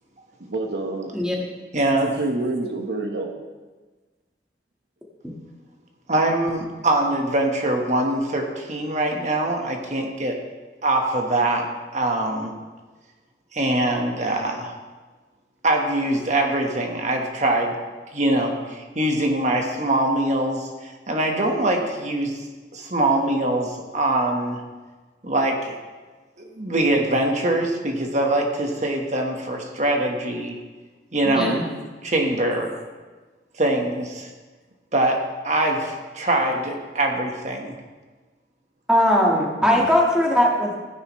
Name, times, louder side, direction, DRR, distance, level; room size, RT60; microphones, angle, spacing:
voice 1, 0.4-1.4 1.9-3.3 31.2-31.7, right 2 dB, 70° right, 3 dB, 1.2 m, -28 dB
voice 2, 1.7-2.1 6.1-10.4 10.8-11.7 11.9-12.5 13.5-14.7 15.6-17.7 18.1-22.4 22.7-24.6 25.2-25.8 26.6-30.5 31.1-31.5 32.0-32.7 33.6-34.3 34.9-37.8, right 1 dB, 40° right, 2 dB, 1.4 m, -23 dB
voice 3, 31.3-31.7 38.9-40.7, equal, 5° right, -2 dB, 1.6 m, -19 dB
15.0 x 10.0 x 3.2 m, 1.3 s
head